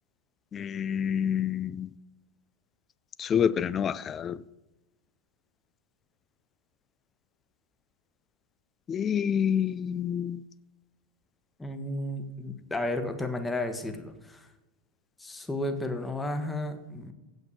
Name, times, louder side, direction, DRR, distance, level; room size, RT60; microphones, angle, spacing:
voice 1, 0.5-1.9 3.2-4.4 8.9-10.4, left 8 dB, 25° left, 0.3 m, -28 dB
voice 2, 11.6-14.4 15.2-17.1, left 1 dB, 10° left, 1.1 m, -33 dB
8.1 x 8.1 x 6.9 m
figure-of-eight pair, 90°, 0 cm